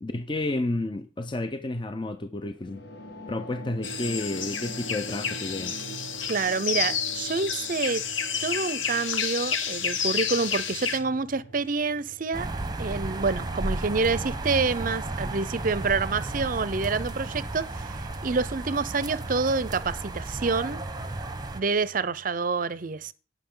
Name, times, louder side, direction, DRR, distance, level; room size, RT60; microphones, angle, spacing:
voice 1, 0.0-2.8 3.3-5.8, left 2 dB, 25° left, 0.5 m, -31 dB
sound 1, 2.6-17.4, right 1 dB, 60° left, 2.1 m, -45 dB
sound 2, 3.8-11.0, left 7 dB, 80° left, 1.5 m, -30 dB
voice 2, 6.3-8.0 8.4-12.5 12.8-18.0 18.2-20.8 21.5-23.1, right 4 dB, 45° right, 0.6 m, -27 dB
sound 3, 12.3-21.6, right 2 dB, 20° right, 0.9 m, -33 dB
17.5 x 6.0 x 3.8 m
head